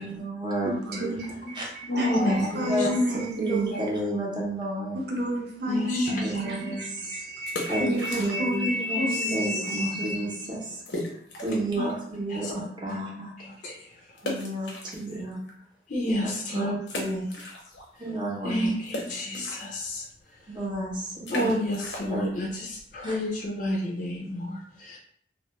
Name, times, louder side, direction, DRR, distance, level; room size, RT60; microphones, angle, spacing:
voice 1, 0.0-1.0 1.5-1.6 2.5-5.0 6.2-7.2 7.7-8.5 9.3-10.8 11.4-13.3 14.2-15.4 16.5-17.3 18.0-18.7 20.5-21.5 22.1-22.2 23.0-23.1, right 1 dB, 25° right, -3 dB, 0.6 m, -31 dB
voice 2, 0.6-3.9 5.1-10.4, equal, 65° right, -1 dB, 0.6 m, -30 dB
voice 3, 1.9-2.9 3.7-3.8 5.7-6.4 7.6-7.7 8.7-9.5 9.8-9.9 11.8-11.9 12.3-12.5 12.9-13.0 13.4-14.0 15.1-15.2 15.9-16.7 18.4-20.1 21.3-25.0, left 1 dB, 45° left, -1 dB, 0.4 m, -30 dB
sound 1, 7.3-8.7 9.0-9.1 9.7-9.8 10.0-10.1 10.9-11.8 12.3-12.4 14.2-15.5 16.0-16.1 16.8-18.0 18.3-23.8, left 2 dB, 90° left, 0.6 m, -38 dB
2.2 x 2.1 x 3.0 m, 0.64 s
head